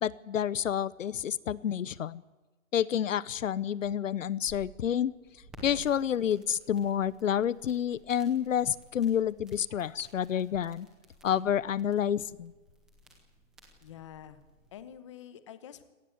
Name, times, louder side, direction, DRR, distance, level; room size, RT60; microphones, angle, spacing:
voice 1, 0.0-2.2 2.7-5.1 5.6-10.9 11.2-12.5, left 9 dB, 75° left, 20 dB, 0.9 m, -29 dB
sound 1, 4.2-14.8, right 1 dB, ahead, 0.6 m, -56 dB
voice 2, 13.8-14.4 14.7-15.8, left 10 dB, 25° left, 12 dB, 1.0 m, -47 dB
25.5 x 18.5 x 8.1 m, 1.2 s
hypercardioid pair, 175°, 39 cm